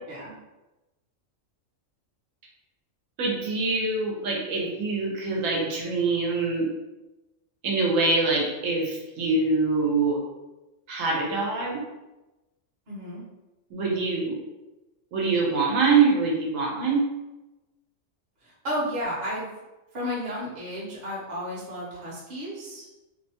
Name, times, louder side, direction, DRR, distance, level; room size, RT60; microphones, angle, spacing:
voice 1, 3.2-6.7 7.6-10.2 10.9-11.8 13.7-14.4 15.1-17.0, right 3 dB, 80° right, -2 dB, 1.0 m, -24 dB
voice 2, 12.9-13.2 18.4-19.5 19.9-22.9, equal, 40° right, -6 dB, 0.8 m, -32 dB
2.7 x 2.1 x 2.7 m, 1.0 s
omnidirectional pair, 1.4 m